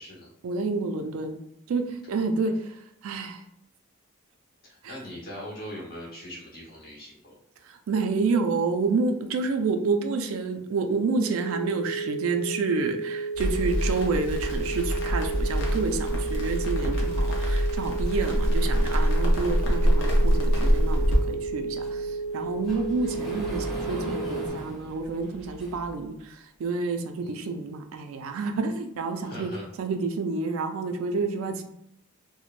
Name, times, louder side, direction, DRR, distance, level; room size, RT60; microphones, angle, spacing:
voice 1, 0.4-1.4 1.7-2.5 3.0-3.4 4.8-4.9 7.6-29.5 29.8-31.6, right 4 dB, 75° right, 5 dB, 0.3 m, -29 dB
voice 2, 4.6-7.3 27.2-27.5 29.2-29.7, equal, 45° left, -5 dB, 1.0 m, -41 dB
sound 1, 11.2-24.5, right 4 dB, 20° left, 0.3 m, -33 dB
Crackle, 13.3-21.2, equal, 60° left, 0.6 m, -25 dB
Sliding door, 21.1-26.1, equal, ahead, 0.8 m, -39 dB
3.1 x 2.0 x 2.4 m, 0.76 s
head